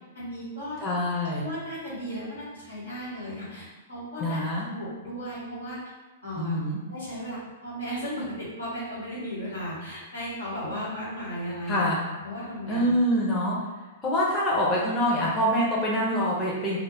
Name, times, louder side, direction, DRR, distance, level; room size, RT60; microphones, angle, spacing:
voice 1, 0.1-0.8 1.4-4.4 4.7-5.8 6.2-6.6 6.9-11.9 12.2-12.9, equal, 85° left, -8 dB, 1.3 m, -35 dB
voice 2, 0.8-1.5 4.2-4.6 6.4-6.8 11.7-12.0 12.7-13.6 14.0-16.8, equal, 20° left, -5 dB, 0.6 m, -25 dB
2.3 x 2.1 x 3.4 m, 1.2 s
hypercardioid pair, 115°, 0 cm